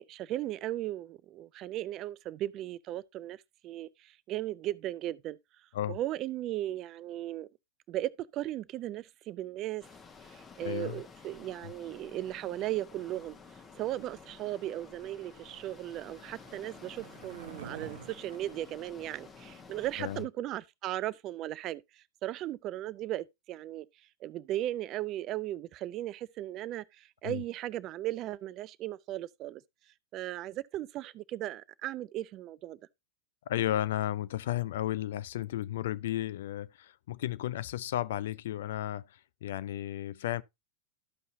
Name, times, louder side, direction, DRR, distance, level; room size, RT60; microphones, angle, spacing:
voice 1, 0.0-5.4 5.9-7.5 7.9-9.8 10.3-13.4 13.8-21.8 22.2-23.9 24.2-29.6 30.1-32.8, right 14 dB, 35° right, 0.4 m, -37 dB
sound 1, 9.8-20.2, left 5 dB, 20° left, 1.2 m, -52 dB
voice 2, 10.6-11.0 20.0-20.2 27.2-27.4 33.5-40.4, left 13 dB, 55° left, 0.4 m, -33 dB
Skateboard, 14.4-19.8, right 7 dB, 65° right, 0.9 m, -51 dB
13.5 x 5.5 x 2.6 m
figure-of-eight pair, 90°, 0 cm